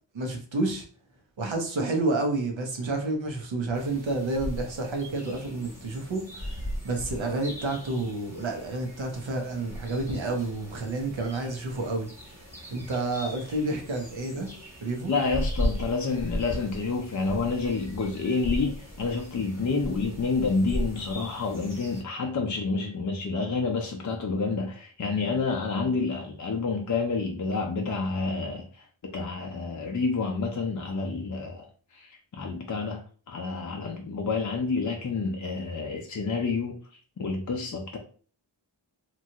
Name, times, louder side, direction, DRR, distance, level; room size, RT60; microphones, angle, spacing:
voice 1, 0.1-0.8 1.4-12.1 12.7-14.5 14.8-15.1, right 2 dB, 75° right, 0.8 m, -30 dB
sound 1, 3.7-22.0, equal, 5° right, 1.2 m, -37 dB
voice 2, 15.1-36.8 37.2-38.0, left 4 dB, 40° left, 0.4 m, -29 dB
3.0 x 2.3 x 2.7 m
wide cardioid pair, 95°, 46 cm